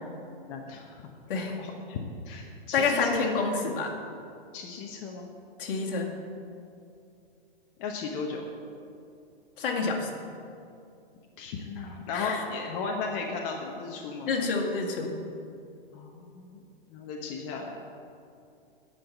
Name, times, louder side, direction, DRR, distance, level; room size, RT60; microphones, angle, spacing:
voice 1, 0.5-1.0 1.6-2.0 2.2-3.3 4.5-5.3 7.8-8.5 11.4-14.3 15.9-16.6 16.9-17.8, left 4 dB, 35° left, 1 dB, 1.0 m, -35 dB
voice 2, 2.7-3.9 5.6-6.1 9.6-10.1 12.1-12.4 14.3-15.1, left 4 dB, 65° left, 0 dB, 2.0 m, -28 dB
10.0 x 5.7 x 8.2 m, 2.5 s
hypercardioid pair, 135°, 30 cm